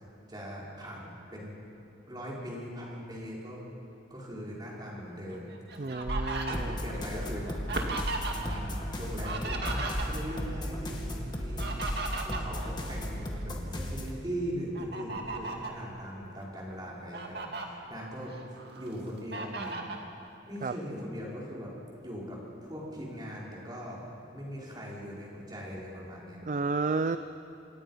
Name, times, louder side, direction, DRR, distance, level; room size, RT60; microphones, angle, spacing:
voice 1, 0.3-1.5 2.1-3.6 4.1-5.6 6.5-7.6 8.3-11.8 12.2-18.4 18.7-19.8 20.5-21.7 22.0-24.0 24.3-26.4, equal, 25° right, -4 dB, 5.1 m, -40 dB
Fowl, 5.3-8.6 8.9-10.4 11.3-13.4 13.9-14.1 14.7-15.8 16.4-16.5 16.9-17.7 18.2-18.9 19.3-20.0, right 2 dB, 60° right, 2.2 m, -36 dB
voice 2, 5.8-6.8 20.6-20.7 26.4-27.2, right 3 dB, 45° right, 10 dB, 0.5 m, -31 dB
sound 1, 6.5-14.2, equal, 25° left, 2.2 m, -35 dB
26.5 x 19.5 x 5.8 m, 3.0 s
head